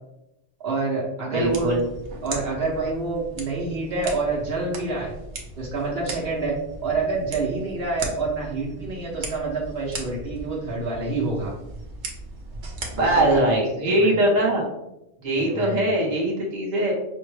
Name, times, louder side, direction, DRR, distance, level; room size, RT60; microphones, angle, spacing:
voice 1, 0.6-1.7 2.2-5.1 5.6-6.5 6.8-11.5 13.0-13.4 13.8-14.2 15.4-15.9, right 3 dB, 65° right, -4 dB, 1.0 m, -27 dB
voice 2, 1.3-1.8 12.9-14.6 15.2-16.9, right 1 dB, 40° right, -2 dB, 1.0 m, -21 dB
sound 1, 1.4-13.4, right 2 dB, 85° right, 1.1 m, -38 dB
5.2 x 2.2 x 3.2 m, 0.90 s
omnidirectional pair, 1.1 m